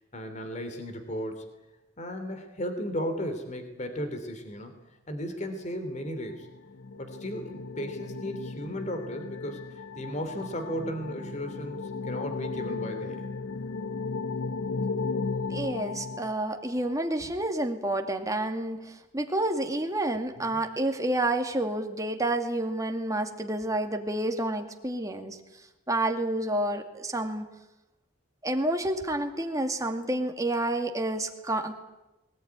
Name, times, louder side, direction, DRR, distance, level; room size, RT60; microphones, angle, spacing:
voice 1, 0.1-1.5 2.0-4.7 5.1-6.5 7.0-13.3 20.4-20.5, equal, 40° left, 7 dB, 3.0 m, -35 dB
sound 1, 6.2-16.9, left 4 dB, 90° left, 0.9 m, -35 dB
voice 2, 15.5-25.4 25.9-27.5 28.4-31.8, right 1 dB, 20° right, 4 dB, 2.2 m, -29 dB
21.0 x 19.0 x 9.6 m, 1.0 s
head